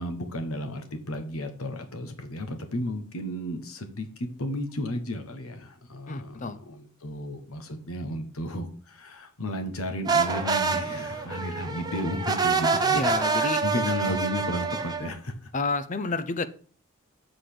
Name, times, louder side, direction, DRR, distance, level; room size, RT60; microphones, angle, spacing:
voice 1, 0.0-15.5, left 1 dB, 80° left, 7 dB, 1.2 m, -33 dB
voice 2, 6.1-6.6 12.9-13.6 14.0-14.2 15.5-16.5, left 3 dB, 35° left, 13 dB, 0.6 m, -30 dB
sound 1, 10.1-15.1, right 4 dB, 20° right, 0.7 m, -26 dB
7.6 x 4.1 x 6.7 m, 0.42 s
head